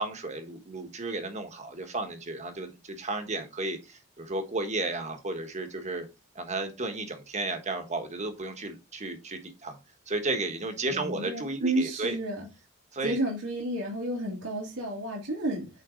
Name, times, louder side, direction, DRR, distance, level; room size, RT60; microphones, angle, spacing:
voice 1, 0.0-6.1 6.3-9.8 10.1-12.2 12.9-13.2, right 2 dB, 35° right, 1.3 m, -33 dB
voice 2, 10.9-12.5 13.0-15.7, right 1 dB, 85° right, 2.2 m, -31 dB
8.9 x 4.0 x 3.8 m
head